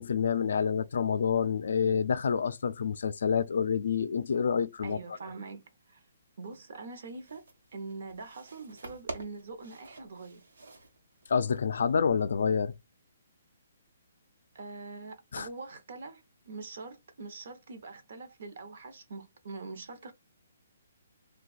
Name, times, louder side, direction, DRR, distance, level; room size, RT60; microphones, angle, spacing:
voice 1, 0.0-5.0 11.3-12.7 15.3-15.5, left 6 dB, 65° left, 0.3 m, -28 dB
voice 2, 4.8-6.0 6.4-7.4 7.7-10.4 14.5-20.1, right 3 dB, 55° right, 0.7 m, -43 dB
sound 1, 7.1-12.0, right 2 dB, 85° right, 1.0 m, -48 dB
2.6 x 2.3 x 3.9 m
hypercardioid pair, 170°, 0 cm